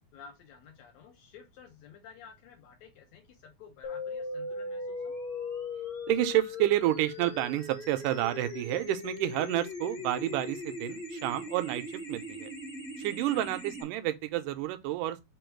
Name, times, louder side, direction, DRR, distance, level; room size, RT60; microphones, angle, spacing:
voice 1, 0.1-5.1 13.2-13.5, left 6 dB, 80° left, 1.7 m, -52 dB
sound 1, 3.8-13.8, left 2 dB, 60° left, 0.9 m, -39 dB
voice 2, 6.1-12.5 13.0-15.2, right 14 dB, 80° right, 2.1 m, -30 dB
5.2 x 2.3 x 4.4 m
omnidirectional pair, 3.7 m